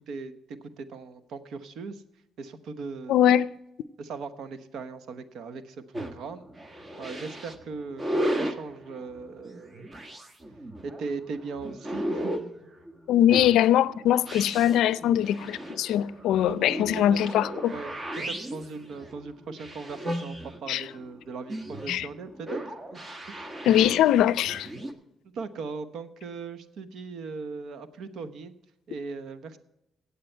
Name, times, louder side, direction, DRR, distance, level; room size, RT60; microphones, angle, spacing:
voice 1, 0.1-2.0 2.4-3.1 4.0-6.4 7.0-9.9 10.8-12.5 16.5-17.2 17.7-22.6 22.9-23.0 23.3-23.5 25.3-28.5 28.9-29.6, right 4 dB, 75° right, 1.0 m, -39 dB
voice 2, 3.1-3.5 13.1-17.7 20.7-20.8 21.9-22.1 23.6-24.7, left 11 dB, 85° left, 0.4 m, -22 dB
sound 1, 5.9-24.9, equal, 25° right, 1.4 m, -36 dB
15.5 x 8.6 x 4.5 m
cardioid pair, 90°, 0 cm